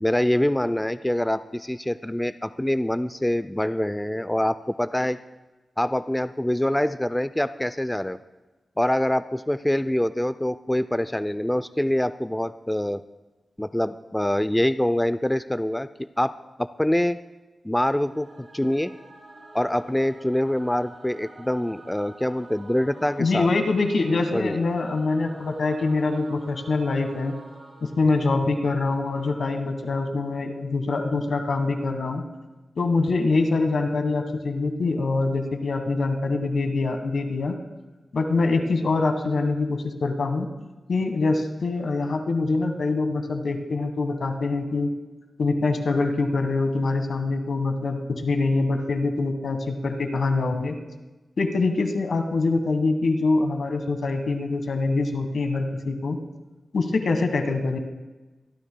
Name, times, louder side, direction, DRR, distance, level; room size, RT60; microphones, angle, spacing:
voice 1, 0.0-5.2 5.8-8.2 8.8-13.0 13.6-15.9 16.2-17.2 17.6-18.9 19.5-23.5 24.3-24.6, left 1 dB, 10° left, 12 dB, 0.4 m, -25 dB
Singing / Musical instrument, 18.0-29.3, right 2 dB, 85° right, 4.0 m, -48 dB
voice 2, 23.2-27.4 27.8-32.2 32.8-37.6 38.1-40.5 40.9-44.9 45.4-50.8 51.4-56.2 56.7-57.8, left 3 dB, 75° left, 6 dB, 1.4 m, -24 dB
24.0 x 13.0 x 2.2 m, 1.1 s
wide cardioid pair, 90°, 0 cm